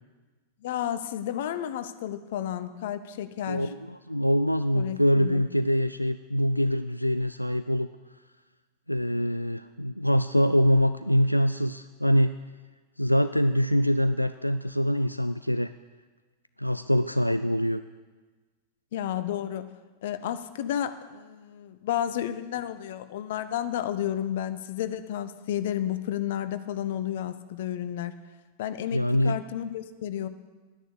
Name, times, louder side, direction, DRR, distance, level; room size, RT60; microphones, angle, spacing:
voice 1, 0.6-3.7 4.7-5.4 18.9-19.7 20.0-28.1 28.6-30.3, left 11 dB, 55° left, 12 dB, 0.8 m, -32 dB
voice 2, 3.4-7.9 8.9-12.3 13.0-15.7 16.6-17.8 28.9-29.4, equal, 90° left, 12 dB, 0.3 m, -24 dB
11.0 x 10.0 x 8.2 m, 1.3 s
figure-of-eight pair, 90°, 0 cm